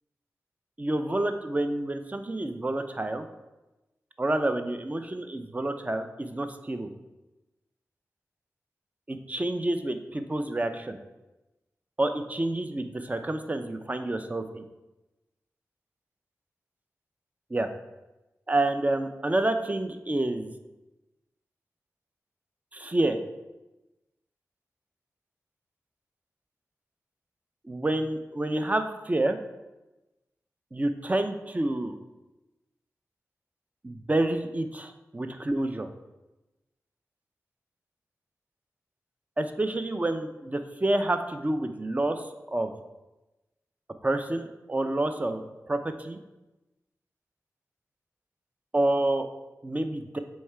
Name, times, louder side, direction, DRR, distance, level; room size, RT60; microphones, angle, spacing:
voice 1, 0.8-3.3 4.2-6.9 9.1-11.0 12.0-14.6 17.5-17.7 18.5-20.5 22.7-23.2 27.7-29.4 30.7-32.0 33.8-34.9 35.1-35.9 39.4-42.7 44.0-46.2 48.7-49.3 49.6-50.2, right 1 dB, 25° right, 7 dB, 0.5 m, -28 dB
7.1 x 3.2 x 4.5 m, 1.0 s
wide cardioid pair, 60°, 6 cm